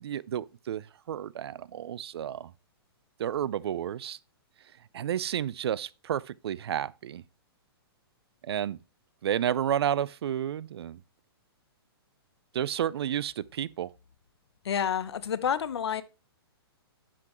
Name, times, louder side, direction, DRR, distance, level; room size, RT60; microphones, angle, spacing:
voice 1, 0.0-2.5 3.2-4.2 4.9-7.2 8.4-8.8 9.2-11.0 12.5-13.9, right 10 dB, 75° right, 0.4 m, -31 dB
voice 2, 14.6-16.0, left 8 dB, 85° left, 0.8 m, -29 dB
10.0 x 6.2 x 3.0 m
hypercardioid pair, 140°, 13 cm